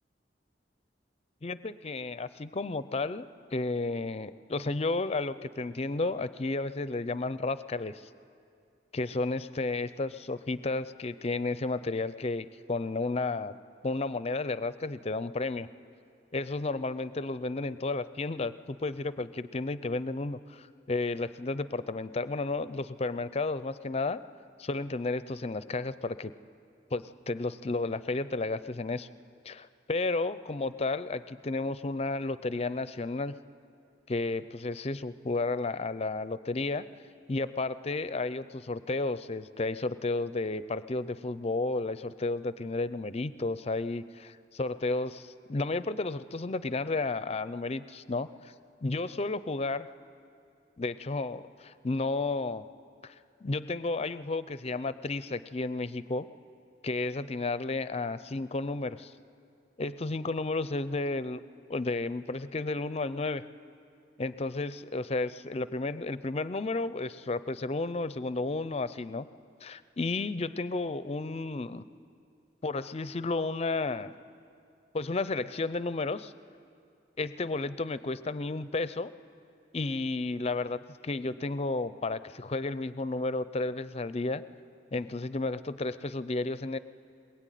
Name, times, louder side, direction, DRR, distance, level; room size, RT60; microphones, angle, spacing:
voice 1, 1.4-3.3 3.5-8.0 8.9-13.5 13.8-15.7 16.3-24.2 24.6-26.3 26.9-29.1 29.4-33.4 34.1-36.9 37.3-48.5 48.8-49.9 50.8-52.6 53.0-53.1 53.4-56.3 56.8-59.1 59.8-61.4 61.7-63.4 64.2-69.3 69.6-71.8 72.6-74.1 74.9-76.3 77.2-79.1 79.7-84.4 84.9-86.8, left 3 dB, 35° left, 15 dB, 0.6 m, -32 dB
21.5 x 21.0 x 9.2 m, 2.4 s
head